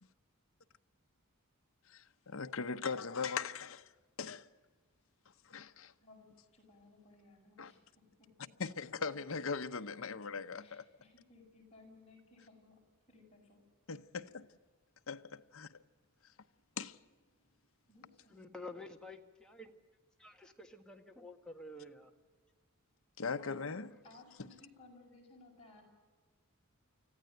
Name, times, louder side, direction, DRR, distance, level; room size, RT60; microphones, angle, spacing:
voice 1, 1.9-3.9 4.2-4.5 5.4-5.9 7.6-7.7 8.6-10.9 13.9-14.5 15.1-15.8 16.8-17.0 23.2-23.9, left 5 dB, 70° left, 0.9 m, -40 dB
voice 2, 6.0-8.5 9.0-9.2 10.6-12.8 13.1-13.6 17.9-18.6 23.4-25.8, left 2 dB, 30° left, 7.3 m, -60 dB
voice 3, 18.3-19.7 20.2-22.1, left 2 dB, 5° left, 1.6 m, -50 dB
25.5 x 15.0 x 9.1 m
head